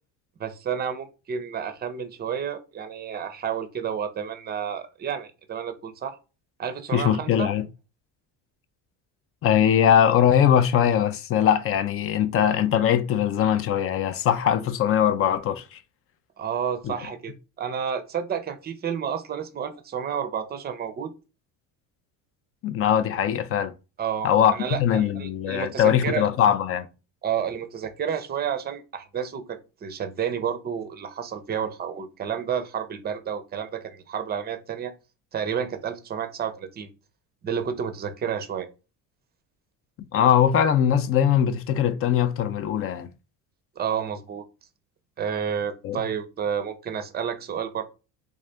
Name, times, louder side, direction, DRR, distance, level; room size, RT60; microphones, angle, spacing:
voice 1, 0.4-6.2 6.6-7.5 16.4-21.1 24.0-26.3 27.2-34.9 35.3-36.9 37.4-38.7 43.8-44.4 45.2-47.8, right 8 dB, 25° right, 0.6 m, -30 dB
voice 2, 6.9-7.7 9.4-15.8 16.8-16.9 22.6-23.7 24.2-24.5 24.8-26.9 40.1-43.1 45.8-46.0, left 9 dB, 35° left, 0.4 m, -21 dB
3.6 x 2.5 x 3.3 m
cardioid pair, 115°, 38 cm